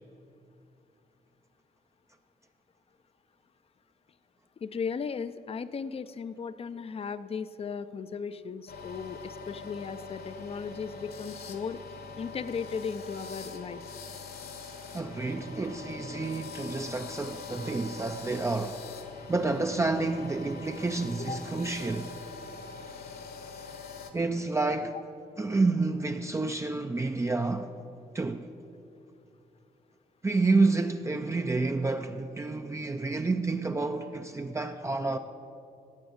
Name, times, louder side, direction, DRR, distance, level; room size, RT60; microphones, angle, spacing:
voice 1, 4.6-11.8 12.2-13.8 21.3-21.4, left 6 dB, 35° left, 0.5 m, -36 dB
sound 1, 8.7-24.1, left 4 dB, 65° left, 1.5 m, -43 dB
voice 2, 14.9-18.9 19.3-22.1 24.1-25.0 25.4-27.7 28.1-28.5 30.2-35.2, right 3 dB, 15° right, 0.5 m, -29 dB
18.0 x 7.0 x 8.0 m
cardioid pair, 115°, 17 cm